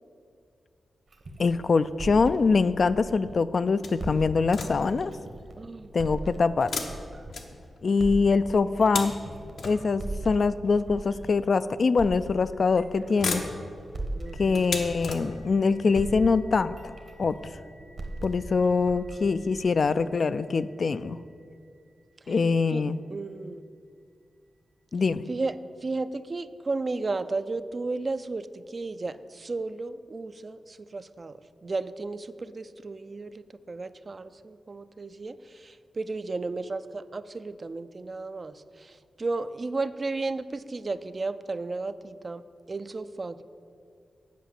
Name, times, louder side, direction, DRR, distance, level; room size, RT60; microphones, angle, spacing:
sound 1, 1.1-3.6 4.0-7.5 8.0-11.5 12.0-15.7 16.0-20.0, right 1 dB, 60° right, 1.2 m, -39 dB
voice 1, 1.4-5.2 5.9-6.7 7.8-9.2 9.6-13.4 14.4-16.7 17.2-17.4 18.2-21.2 22.3-23.0 24.9-25.2, left 4 dB, 55° left, 13 dB, 0.3 m, -24 dB
sound 2, 3.8-5.1 6.6-8.0 8.6-10.2 11.1-11.2 12.3-12.7 13.0-15.7 16.4-16.5 16.8-16.9, left 4 dB, 80° left, 0.9 m, -36 dB
voice 2, 5.6-5.9 14.2-14.7 22.3-23.6 25.3-43.4, right 3 dB, 40° right, 12 dB, 0.4 m, -34 dB
sound 3, 14.3-23.5, left 1 dB, 80° right, 1.6 m, -60 dB
8.3 x 5.1 x 7.5 m, 2.3 s
cardioid pair, 70°, 0 cm